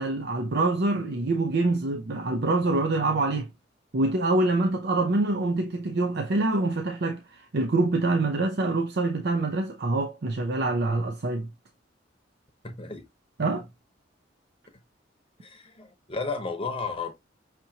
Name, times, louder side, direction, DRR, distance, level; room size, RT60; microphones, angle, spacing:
voice 1, 0.0-3.5 3.9-11.5 13.4-13.7, right 2 dB, 60° right, 0.6 m, -25 dB
voice 2, 12.6-13.1 15.4-17.1, left 4 dB, 30° left, 0.9 m, -33 dB
5.8 x 2.8 x 2.7 m
head